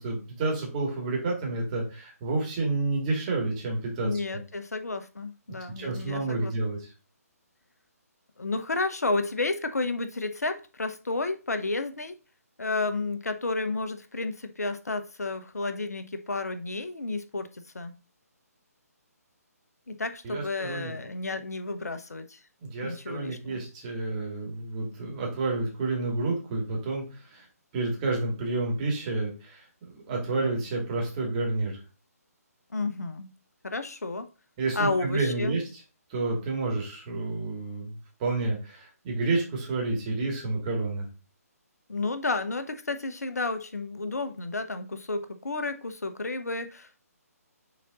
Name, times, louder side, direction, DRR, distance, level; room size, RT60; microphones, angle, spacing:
voice 1, 0.0-4.4 5.8-6.9 20.2-20.9 22.6-27.5 27.7-31.8 34.6-35.6 36.1-41.1, right 3 dB, 30° right, 2.3 m, -30 dB
voice 2, 4.0-6.5 8.4-12.2 12.6-17.9 19.9-22.4 22.8-23.6 32.7-33.3 33.6-34.3 34.7-35.6 41.9-47.1, left 3 dB, 70° left, 0.8 m, -31 dB
6.4 x 3.9 x 4.0 m
figure-of-eight pair, 140°, 9 cm